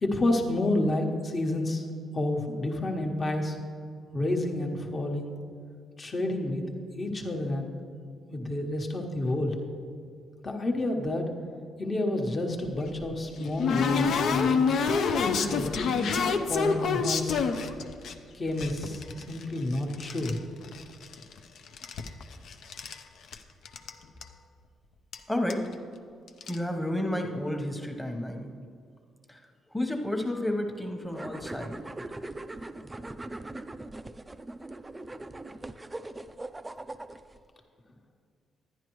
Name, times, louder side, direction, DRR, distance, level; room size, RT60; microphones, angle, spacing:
voice 1, 0.0-1.9 2.1-3.6 4.1-5.3 6.0-6.6 6.9-7.7 8.3-9.6 10.4-11.3 11.8-14.7 15.2-17.4 18.3-20.4, left 1 dB, 35° left, 3 dB, 1.1 m, -30 dB
sound 1, 12.7-18.1 18.6-20.4 20.6-21.4 21.7-23.0 23.3-23.4 23.6-23.9 24.2-24.3 25.1-25.2 25.5-25.7 26.3-26.6, left 5 dB, 70° left, 0.5 m, -28 dB
voice 2, 25.3-25.8 26.5-28.5 29.3-29.4 29.7-31.8, left 1 dB, 5° left, 3 dB, 1.0 m, -31 dB
sound 2, 31.1-37.4, right 2 dB, 15° right, 0.3 m, -41 dB
10.5 x 10.0 x 3.1 m, 2.2 s
cardioid pair, 90°, 0 cm